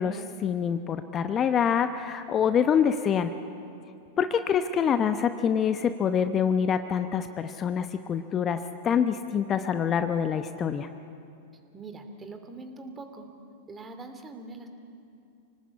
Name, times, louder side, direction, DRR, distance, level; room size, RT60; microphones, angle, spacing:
voice 1, 0.0-3.3 4.2-10.9, left 7 dB, 30° left, 9 dB, 0.9 m, -26 dB
voice 2, 11.7-13.3 13.7-14.7, right 3 dB, 20° right, 7 dB, 2.5 m, -42 dB
26.5 x 18.5 x 8.4 m, 2.6 s
figure-of-eight pair, 95°, 0 cm